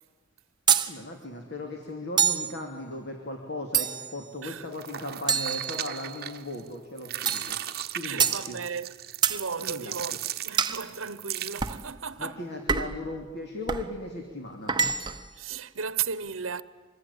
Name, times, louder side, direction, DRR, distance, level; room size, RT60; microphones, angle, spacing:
sound 1, 0.7-0.9 2.2-2.5 3.7-4.2 5.3-6.2 7.3-7.5 8.2-8.4 9.2-9.4 10.6-10.8 11.6-11.8 12.7-13.0 13.7-13.9 14.7-15.3, right 7 dB, 20° right, 1.0 m, -26 dB
voice 1, 0.9-7.6 7.9-8.6 9.6-10.2 12.2-14.8, left 1 dB, 55° left, 2.8 m, -37 dB
sound 2, 4.7-6.7 7.0-11.9, right 12 dB, 50° right, 1.0 m, -37 dB
voice 2, 8.0-9.0 9.3-10.1 10.4-12.4 15.3-16.6, right 6 dB, 70° right, 0.9 m, -35 dB
25.5 x 22.0 x 10.0 m
head